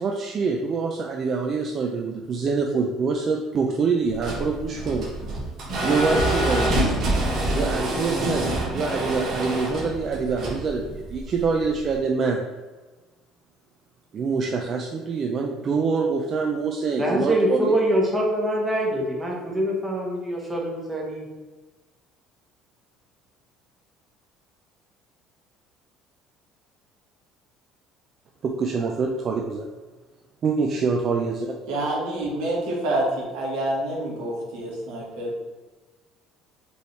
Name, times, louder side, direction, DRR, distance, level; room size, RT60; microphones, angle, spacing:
voice 1, 0.0-5.1 5.8-7.0 7.5-12.4 14.1-17.7 28.4-29.7 30.4-31.5, right 4 dB, 35° right, 1 dB, 0.4 m, -25 dB
sound 1, 4.1-11.9, right 1 dB, 55° right, 1.4 m, -26 dB
voice 2, 17.0-21.3, equal, 15° right, -2 dB, 1.0 m, -24 dB
voice 3, 31.7-35.3, right 1 dB, 85° right, -3 dB, 1.5 m, -27 dB
5.2 x 3.2 x 3.2 m, 1.3 s
cardioid pair, 145°, 0 cm